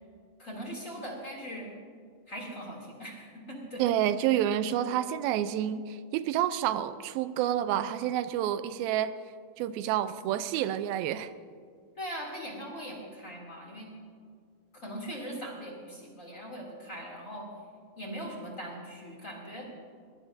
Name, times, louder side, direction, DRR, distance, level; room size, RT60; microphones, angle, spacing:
voice 1, 0.4-1.7 2.3-3.8 4.3-4.4 12.0-13.9 14.7-17.5 18.0-19.7, equal, 25° left, -2 dB, 2.6 m, -40 dB
voice 2, 3.8-9.2 9.6-11.3, right 11 dB, 85° right, 12 dB, 2.4 m, -29 dB
22.0 x 21.0 x 2.6 m, 2.1 s
omnidirectional pair, 4.2 m